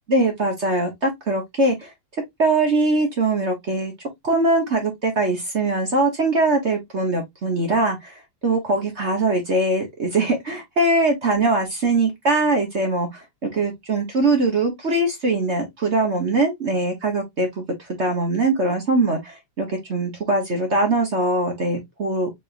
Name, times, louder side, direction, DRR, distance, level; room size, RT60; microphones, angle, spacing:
voice 1, 0.1-1.9 2.4-3.9 4.2-8.1 8.4-17.6 18.0-22.3, right 2 dB, 45° right, 1.0 m, -22 dB
4.2 x 3.4 x 2.5 m
omnidirectional pair, 2.4 m